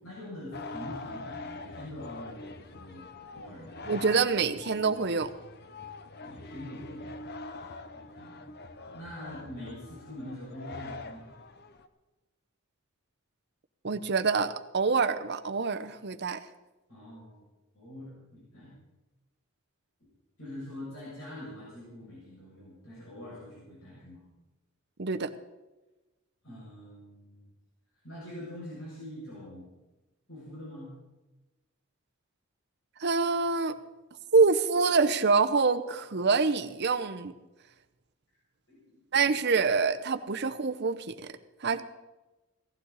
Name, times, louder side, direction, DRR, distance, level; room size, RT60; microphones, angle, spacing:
voice 1, 0.0-3.1 3.3-3.8 6.2-7.1 7.9-8.4 8.9-11.3 16.9-17.4 17.7-18.7 20.4-24.2 26.4-27.5 28.0-29.7 30.3-30.9 38.7-39.3, left 1 dB, 65° left, -7 dB, 6.8 m, -44 dB
sound 1, 0.5-11.9, left 3 dB, 50° left, 0.9 m, -44 dB
voice 2, 3.9-5.3 13.8-16.5 25.0-25.3 33.0-33.8 34.3-37.3 39.1-41.3 41.6-41.8, right 4 dB, 50° right, 10 dB, 0.8 m, -26 dB
17.5 x 15.0 x 4.1 m, 1.1 s
head